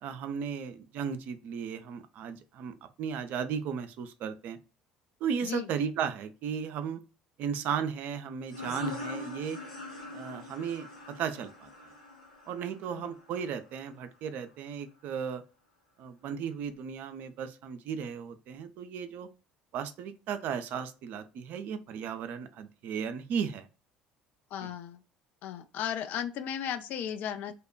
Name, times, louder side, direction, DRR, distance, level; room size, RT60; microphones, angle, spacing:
voice 1, 0.0-4.6 5.2-7.0 7.4-9.6 10.1-11.7 12.5-15.4 16.0-19.3 19.7-23.7 24.6-24.7, right 7 dB, 50° right, 0.4 m, -35 dB
sound 1, 8.5-13.8, left 3 dB, 80° left, 0.7 m, -42 dB
voice 2, 24.5-25.0 25.4-27.5, left 9 dB, 50° left, 0.3 m, -35 dB
2.8 x 2.1 x 2.2 m
figure-of-eight pair, 55°, 4 cm